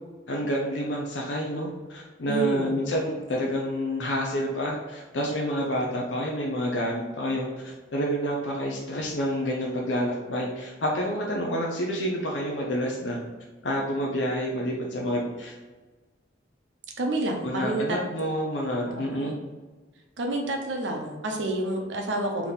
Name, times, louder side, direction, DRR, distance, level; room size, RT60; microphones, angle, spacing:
voice 1, 0.3-13.2 13.6-15.5 17.4-19.3, equal, 80° left, -1 dB, 0.6 m, -28 dB
voice 2, 2.3-2.9 17.0-18.0 18.9-19.3 20.2-22.5, right 2 dB, 80° right, 2 dB, 0.7 m, -29 dB
3.5 x 2.9 x 3.9 m, 1.3 s
head